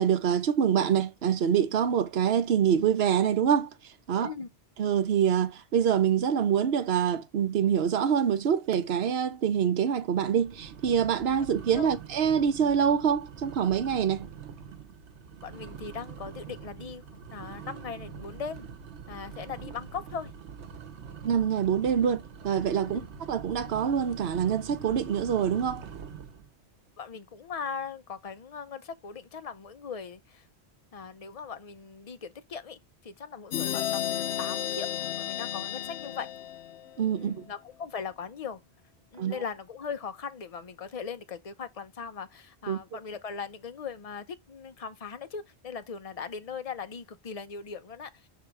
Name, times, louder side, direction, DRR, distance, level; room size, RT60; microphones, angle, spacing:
voice 1, 0.0-3.7 4.1-4.3 4.8-14.3 21.2-23.0 23.3-25.8 37.0-37.4 39.2-39.4 42.7-42.8, right 8 dB, 70° right, 1.0 m, -25 dB
sound 1, 8.2-8.6 8.8-9.2 9.7-9.8 10.3-26.5, right 6 dB, 90° right, 1.1 m, -44 dB
voice 2, 15.4-18.7 19.1-20.3 22.8-23.1 27.0-30.5 30.9-34.9 35.2-36.3 37.2-38.6 39.1-48.3, left 6 dB, 40° left, 0.7 m, -39 dB
sound 2, 33.5-37.1, left 10 dB, 75° left, 1.0 m, -33 dB
6.0 x 3.8 x 4.7 m
omnidirectional pair, 1.1 m